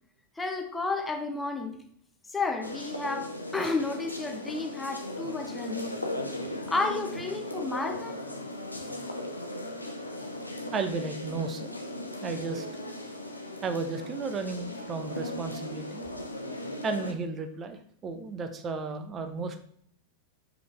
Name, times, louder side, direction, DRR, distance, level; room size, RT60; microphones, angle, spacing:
voice 1, 0.4-1.8 2.3-5.8 6.7-8.2, left 3 dB, 10° left, 4 dB, 1.0 m, -32 dB
sound 1, 2.6-17.1, left 1 dB, 85° left, 0.7 m, -37 dB
voice 2, 10.7-11.7 12.2-12.7 13.6-16.1 16.8-19.6, right 4 dB, 25° right, 7 dB, 0.8 m, -34 dB
6.1 x 5.1 x 3.3 m, 0.62 s
figure-of-eight pair, 90°, 0 cm